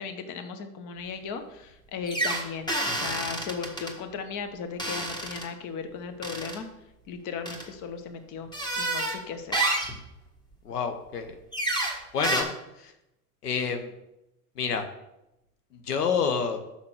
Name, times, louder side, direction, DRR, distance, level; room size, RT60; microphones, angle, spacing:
voice 1, 0.0-6.7 7.1-8.5 8.8-9.6, left 5 dB, 40° left, 8 dB, 1.2 m, -36 dB
sound 1, 2.1-3.9 4.8-5.5 6.2-6.6 7.5-7.6 8.5-9.2 9.5-10.0 11.5-12.0 12.2-12.4, right 2 dB, 10° left, 1.6 m, -29 dB
voice 2, 10.6-11.4 12.1-12.5 12.8-12.9 13.4-13.9 14.6-14.8 15.7-16.6, left 6 dB, 90° left, 7 dB, 1.1 m, -28 dB
6.0 x 5.8 x 6.3 m, 0.90 s
hypercardioid pair, 100°, 45 cm